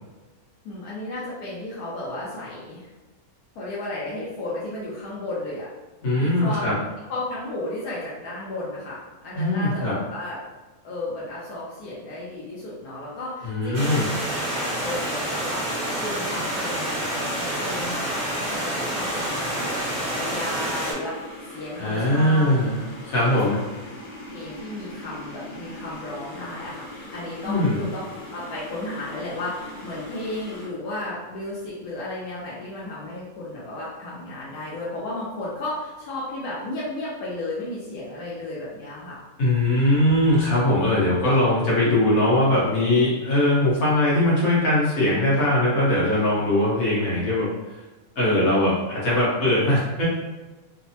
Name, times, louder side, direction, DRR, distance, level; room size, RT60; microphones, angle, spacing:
voice 1, 0.6-2.9 3.5-5.7 6.2-6.7 7.1-9.0 9.2-10.4 10.8-19.8 20.1-21.2 21.5-22.5 23.3-23.5 24.3-28.0 28.3-39.2, left 1 dB, 90° left, -7 dB, 1.2 m, -34 dB
voice 2, 6.0-6.7 9.3-10.0 13.4-14.1 21.8-23.6 27.4-27.8 39.4-47.5 48.2-50.1, left 1 dB, 65° left, -7 dB, 1.5 m, -21 dB
Stream, 13.7-20.9, right 1 dB, 35° right, 0.9 m, -28 dB
sound 1, 18.5-30.7, left 1 dB, 40° left, 0.9 m, -41 dB
3.3 x 2.0 x 2.7 m, 1.2 s
omnidirectional pair, 1.5 m